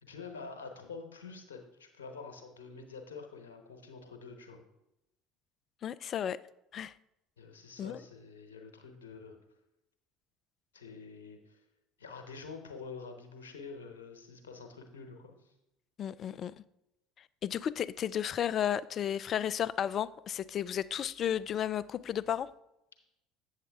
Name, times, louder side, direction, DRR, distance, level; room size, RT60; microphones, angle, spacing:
voice 1, 0.0-4.6 7.4-9.4 10.7-11.6 12.0-15.5, left 4 dB, 80° left, 1.1 m, -47 dB
voice 2, 5.8-6.4 6.7-6.9 7.8-8.0 16.0-16.5 17.4-22.5, left 9 dB, 45° left, 0.3 m, -33 dB
8.1 x 7.4 x 3.5 m
hypercardioid pair, 65°, 0 cm